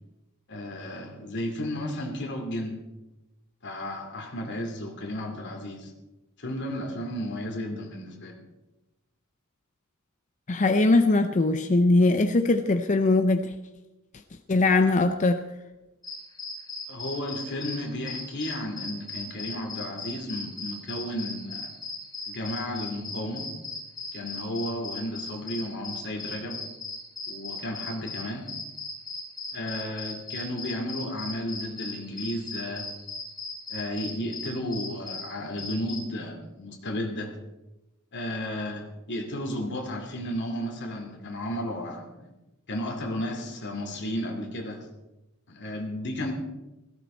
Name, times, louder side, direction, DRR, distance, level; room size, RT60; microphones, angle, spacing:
voice 1, 0.5-2.8 3.6-5.9 6.4-8.4 16.9-21.7 22.3-23.5 24.1-26.6 27.3-28.5 29.5-32.9 33.7-37.3 38.1-42.3 42.7-44.9 45.5-46.3, left 1 dB, 55° left, 2 dB, 2.5 m, -33 dB
voice 2, 10.5-13.5 14.5-15.4, left 2 dB, 35° left, 8 dB, 0.6 m, -21 dB
sound 1, 16.0-36.0, left 3 dB, 20° left, 4.3 m, -38 dB
16.5 x 14.5 x 4.4 m, 1.0 s
head